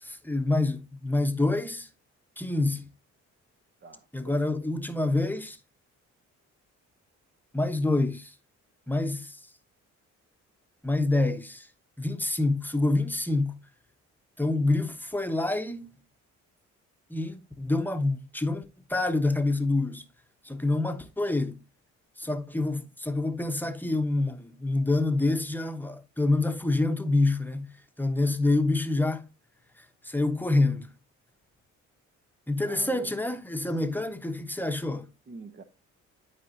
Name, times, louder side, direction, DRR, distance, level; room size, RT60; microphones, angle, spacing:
voice 1, 0.0-1.9 2.4-2.9 4.1-5.6 7.5-8.3 8.9-9.4 10.8-11.7 12.0-13.6 14.4-15.9 17.1-18.6 18.9-20.0 20.4-21.6 22.2-29.3 29.8-30.9 32.5-35.1, left 2 dB, 5° left, 1.1 m, -27 dB
voice 2, 3.8-4.5 32.6-33.1 33.7-34.0 35.3-35.6, right 3 dB, 35° right, 1.0 m, -46 dB
12.0 x 4.8 x 2.7 m
cardioid pair, 90°, 30 cm